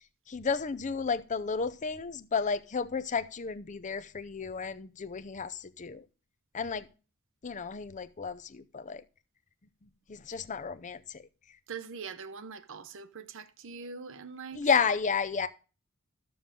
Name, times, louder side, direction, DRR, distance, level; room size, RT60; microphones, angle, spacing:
voice 1, 0.3-6.0 6.5-6.9 7.4-9.0 10.1-11.0 14.5-15.5, left 5 dB, 35° left, 0.6 m, -32 dB
voice 2, 11.7-14.9, right 5 dB, 65° right, 0.7 m, -43 dB
13.0 x 7.1 x 3.7 m
head